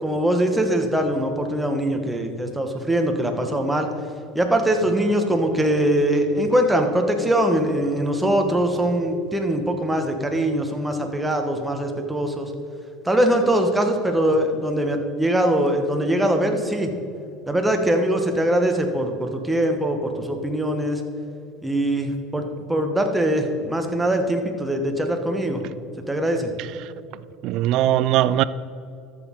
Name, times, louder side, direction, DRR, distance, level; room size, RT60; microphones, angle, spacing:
voice 1, 0.0-3.9 4.3-12.5 13.0-16.9 17.5-21.0 21.6-25.6 26.1-26.5, right 1 dB, 10° right, 1.3 m, -22 dB
voice 2, 26.6-26.9 27.4-28.4, right 13 dB, 65° right, 0.3 m, -20 dB
13.5 x 6.4 x 3.8 m
supercardioid pair, 95°, 0 cm